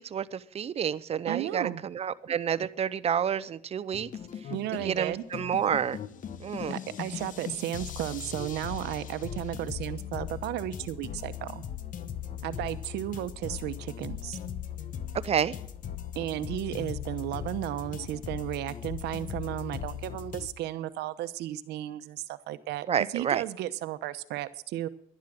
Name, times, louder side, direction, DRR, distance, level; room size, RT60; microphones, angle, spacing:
voice 1, 0.0-4.1 4.8-6.0 6.4-6.8 15.2-15.5 22.9-23.4, right 8 dB, 35° right, 15 dB, 0.7 m, -29 dB
voice 2, 1.3-1.8 4.5-5.2 6.7-11.6 12.4-14.4 16.2-24.9, right 13 dB, 80° right, 13 dB, 0.9 m, -34 dB
sound 1, 3.9-20.5, left 9 dB, 50° left, 1.1 m, -39 dB
11.5 x 11.0 x 7.5 m, 0.69 s
cardioid pair, 110°, 17 cm